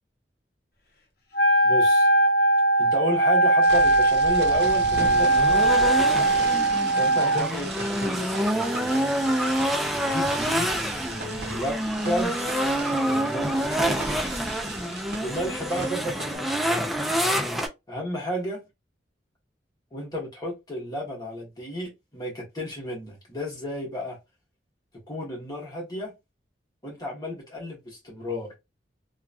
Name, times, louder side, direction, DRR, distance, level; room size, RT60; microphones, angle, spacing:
Wind instrument woodwind instrument, 1.3-7.5, right 2 dB, 55° left, 0.8 m, -20 dB
voice 1, 1.6-2.1 2.8-6.2 7.0-9.1 9.9-10.7 11.0-12.4 13.0-14.3 15.2-16.9 17.9-18.6 19.9-24.2 25.1-26.1 26.8-28.5, equal, 20° left, 1.3 m, -32 dB
sound 1, 3.6-16.4, right 3 dB, 65° right, 0.6 m, -38 dB
sound 2, 4.5-17.7, equal, ahead, 0.4 m, -27 dB
3.0 x 2.3 x 2.4 m
head